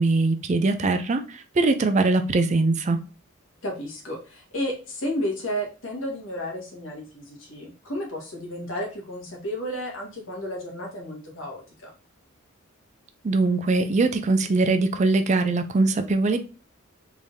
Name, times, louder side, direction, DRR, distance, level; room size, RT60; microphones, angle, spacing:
voice 1, 0.0-3.0 13.2-16.4, right 3 dB, 35° right, 9 dB, 0.4 m, -22 dB
voice 2, 3.6-11.9, equal, 65° left, -1 dB, 1.4 m, -32 dB
3.6 x 3.4 x 2.7 m, 0.35 s
head